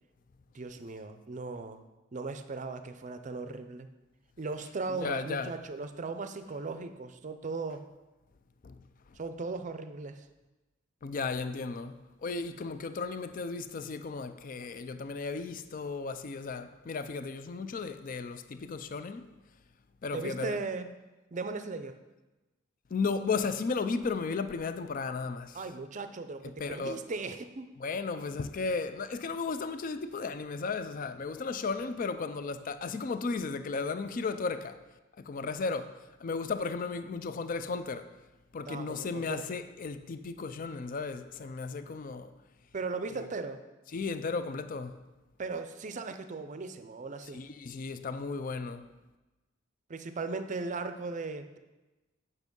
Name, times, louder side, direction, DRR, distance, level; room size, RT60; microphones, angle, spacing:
voice 1, 0.5-1.8 2.1-3.9 4.4-7.9 9.2-10.3 20.1-20.9 21.3-22.0 25.5-27.7 38.7-39.6 42.7-43.6 45.4-47.4 49.9-51.6, right 3 dB, 40° right, 0.5 m, -37 dB
voice 2, 4.9-5.5 8.6-8.7 11.0-11.9 12.2-19.3 20.0-20.6 22.9-25.6 26.6-27.0 27.8-34.8 35.2-35.9 36.2-38.1 38.5-42.3 43.9-44.9 47.3-48.8, left 4 dB, 45° left, 0.4 m, -34 dB
8.4 x 5.4 x 5.3 m
head